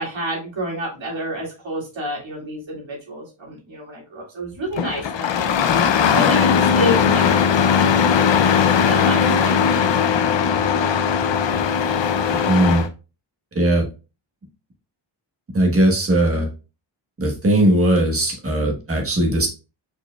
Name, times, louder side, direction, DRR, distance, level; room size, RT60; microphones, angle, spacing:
voice 1, 0.0-5.3 6.1-11.0, equal, 80° right, -3 dB, 2.3 m, -29 dB
Engine starting, 4.7-12.9, left 7 dB, 70° left, 0.6 m, -18 dB
voice 2, 12.4-12.8 13.5-13.9 15.5-16.5 17.2-19.5, right 1 dB, 30° right, 1 dB, 1.3 m, -18 dB
4.8 x 4.4 x 2.3 m, 0.31 s
wide cardioid pair, 155°, 45 cm